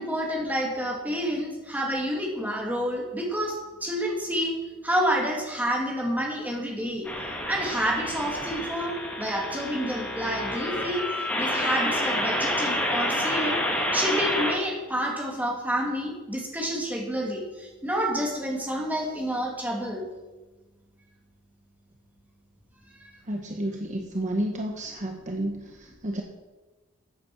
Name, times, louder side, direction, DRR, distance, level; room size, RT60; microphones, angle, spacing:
voice 1, 0.0-4.6 4.8-7.1 7.5-11.0 11.4-13.6 13.9-20.0 23.0-23.1, equal, 10° right, -1 dB, 2.8 m, -29 dB
sound 1, 7.0-14.5, left 1 dB, 10° left, 2.7 m, -28 dB
voice 2, 23.2-26.2, right 1 dB, 35° right, 2 dB, 1.2 m, -31 dB
14.5 x 8.5 x 6.3 m, 1.2 s
head